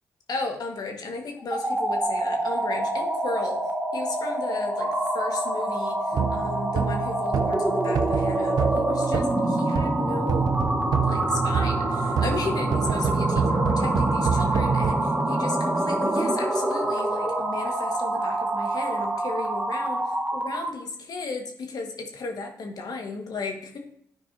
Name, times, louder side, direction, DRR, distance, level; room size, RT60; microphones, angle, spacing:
voice 1, 0.3-3.6 3.9-6.1 6.3-10.5 11.0-23.8, left 3 dB, 65° left, 3 dB, 1.6 m, -34 dB
sound 1, 1.4-20.8, right 1 dB, 20° right, 1.1 m, -26 dB
sound 2, 6.1-10.0 10.3-14.9, right 7 dB, 70° right, 0.6 m, -27 dB
12.0 x 4.6 x 2.7 m, 0.68 s
supercardioid pair, 45°, 7 cm